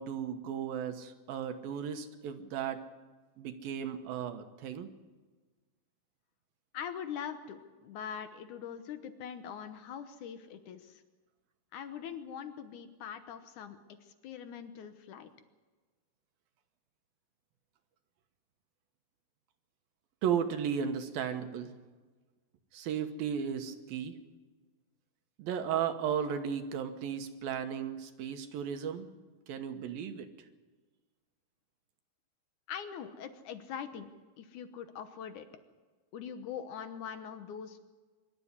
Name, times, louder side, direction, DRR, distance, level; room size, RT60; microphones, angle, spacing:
voice 1, 0.0-2.8 3.4-4.9 20.2-21.7 22.7-24.2 25.4-29.1 29.5-30.3, right 8 dB, 70° right, 7 dB, 2.7 m, -35 dB
voice 2, 6.7-11.0 11.7-15.3 32.7-34.1 34.4-35.5 36.1-37.8, left 8 dB, 75° left, 9 dB, 1.9 m, -42 dB
24.5 x 13.0 x 9.7 m, 1.3 s
omnidirectional pair, 4.9 m